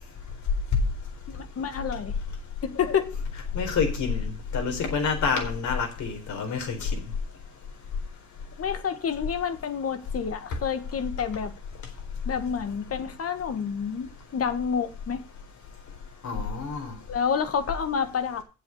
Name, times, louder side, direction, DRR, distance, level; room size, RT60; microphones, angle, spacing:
voice 1, 1.3-2.2 2.6-3.2 8.6-11.5 12.3-15.2 17.1-18.4, left 7 dB, 50° left, 1.7 m, -29 dB
voice 2, 3.5-6.9 16.2-16.9, left 5 dB, 70° left, 4.2 m, -28 dB
8.0 x 7.9 x 7.8 m
cardioid pair, 90°, 30 cm